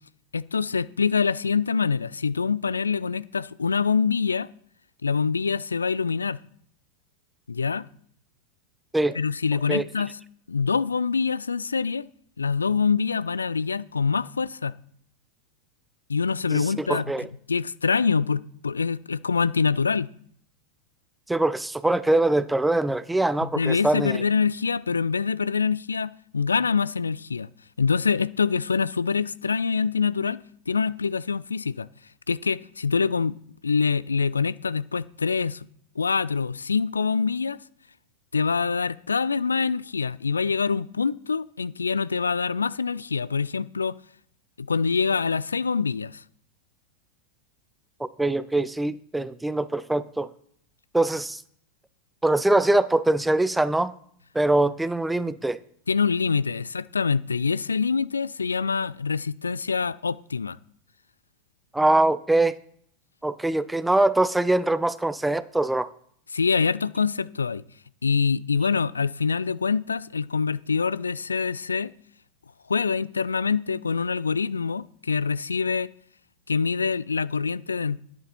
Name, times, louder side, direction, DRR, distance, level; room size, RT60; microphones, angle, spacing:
voice 1, 0.3-4.5 5.0-6.4 7.5-7.9 9.1-10.2 10.5-12.1 12.4-14.7 16.1-20.1 23.6-27.5 27.8-30.4 30.7-31.9 32.3-33.4 33.6-35.7 36.0-37.6 38.3-44.0 44.6-46.2 55.9-60.6 66.3-67.6 68.0-71.9 72.7-75.9 76.5-78.0, left 5 dB, 75° left, 0.3 m, -25 dB
voice 2, 16.5-17.3 21.3-24.2 48.0-50.3 50.9-51.4 52.2-53.9 54.3-55.6 61.7-62.5 63.2-65.9, right 2 dB, 5° right, 0.5 m, -23 dB
11.5 x 9.7 x 4.3 m
figure-of-eight pair, 90°, 0 cm